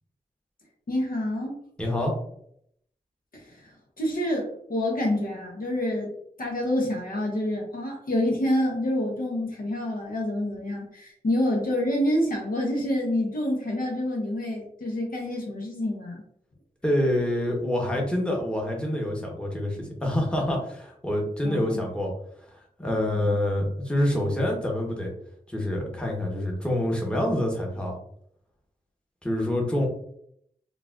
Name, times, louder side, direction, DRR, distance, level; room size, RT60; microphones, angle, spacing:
voice 1, 0.9-1.5 3.3-3.7 4.0-6.1 6.4-16.2 21.4-21.8 23.1-23.4, left 1 dB, 65° left, -1 dB, 0.9 m, -27 dB
voice 2, 1.8-2.1 16.8-22.1 22.6-25.1 25.5-28.0 29.2-29.9, left 1 dB, 5° left, -1 dB, 1.0 m, -26 dB
3.9 x 2.4 x 2.4 m, 0.68 s
cardioid pair, 50°, 16 cm